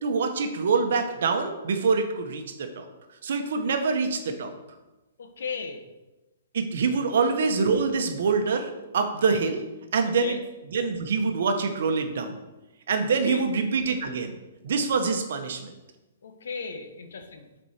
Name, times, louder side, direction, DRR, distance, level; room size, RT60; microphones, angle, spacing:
voice 1, 0.0-2.9 3.2-4.5 6.5-9.6 9.9-10.4 10.7-12.3 12.9-14.4 14.6-15.7, right 4 dB, 60° right, 6 dB, 1.0 m, -25 dB
voice 2, 5.2-5.9 7.1-7.2 10.2-10.4 13.3-13.4 16.2-17.5, left 5 dB, 80° left, 7 dB, 1.0 m, -36 dB
7.5 x 4.5 x 4.4 m, 1.1 s
hypercardioid pair, 175°, 0 cm